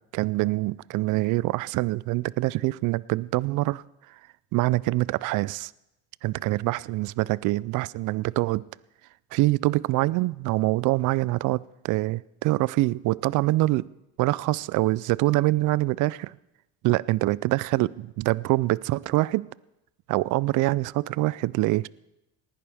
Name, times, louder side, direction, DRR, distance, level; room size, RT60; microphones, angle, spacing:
voice 1, 0.1-3.8 4.5-5.7 6.2-8.6 9.3-13.8 14.2-16.4 16.8-19.5 20.1-21.9, right 19 dB, 60° right, 0.5 m, -25 dB
19.0 x 11.0 x 3.5 m
supercardioid pair, 85°, 35 cm